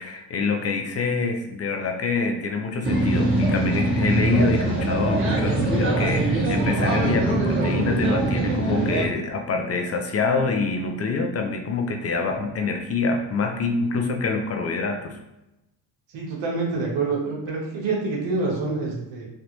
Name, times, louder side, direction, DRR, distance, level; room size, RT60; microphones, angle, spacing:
voice 1, 0.0-15.2, left 4 dB, 35° left, 4 dB, 0.6 m, -26 dB
sound 1, 2.8-9.0, right 2 dB, 25° right, 1.4 m, -22 dB
voice 2, 16.1-19.3, right 3 dB, 75° right, -2 dB, 1.1 m, -26 dB
3.3 x 2.5 x 2.9 m, 0.92 s
cardioid pair, 85°, 44 cm